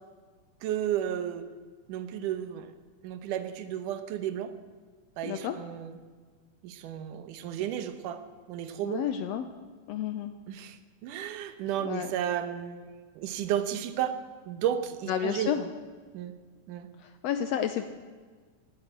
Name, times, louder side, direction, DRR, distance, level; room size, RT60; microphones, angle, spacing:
voice 1, 0.6-1.5 1.9-2.7 3.0-4.5 5.2-5.9 6.6-8.2 8.5-9.0 10.5-14.2 14.5-15.6 16.1-16.3 16.7-16.9, right 10 dB, 80° right, 11 dB, 2.5 m, -33 dB
voice 2, 5.2-5.6 8.8-9.5 9.9-10.3 11.8-12.1 15.1-15.7 17.0-17.8, left 9 dB, 75° left, 9 dB, 1.6 m, -31 dB
17.0 x 9.8 x 8.1 m, 1.5 s
omnidirectional pair, 3.6 m